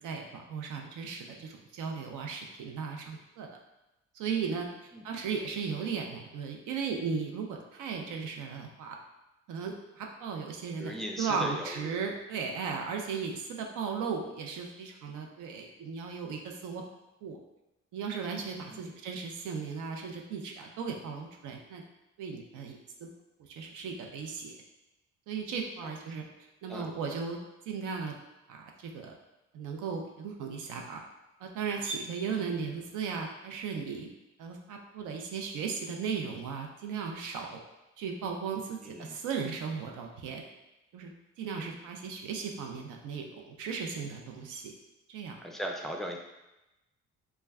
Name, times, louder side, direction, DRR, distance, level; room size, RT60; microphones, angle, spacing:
voice 1, 0.0-3.6 4.1-9.0 9.5-16.8 17.2-17.4 17.9-21.8 22.2-23.1 23.4-24.6 25.3-26.2 26.6-27.4 27.7-28.1 28.5-29.1 29.5-31.0 31.4-34.1 34.4-37.6 38.0-40.4 40.9-41.1 41.4-44.7 45.1-45.4, right 5 dB, 85° right, 2 dB, 0.5 m, -36 dB
voice 2, 10.8-12.0 18.7-18.9 26.7-26.9 32.3-32.5 38.8-39.2 41.6-41.8 45.4-46.2, equal, ahead, 1 dB, 0.3 m, -39 dB
2.2 x 2.1 x 3.4 m, 0.96 s
cardioid pair, 90°, 30 cm